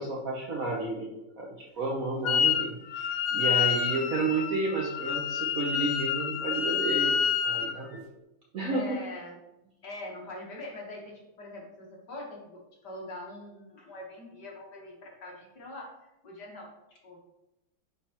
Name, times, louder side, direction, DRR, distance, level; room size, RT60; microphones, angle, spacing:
voice 1, 0.0-1.5 1.8-8.1 8.5-8.8, right 2 dB, 60° right, -2 dB, 0.9 m, -32 dB
Wind instrument woodwind instrument, 2.2-2.7 2.9-7.7, left 7 dB, 75° left, 0.9 m, -28 dB
voice 2, 8.7-9.4 9.8-15.9 16.2-16.7 17.0-17.2, left 2 dB, 60° left, -2 dB, 1.8 m, -43 dB
9.8 x 3.3 x 2.9 m, 0.91 s
omnidirectional pair, 2.2 m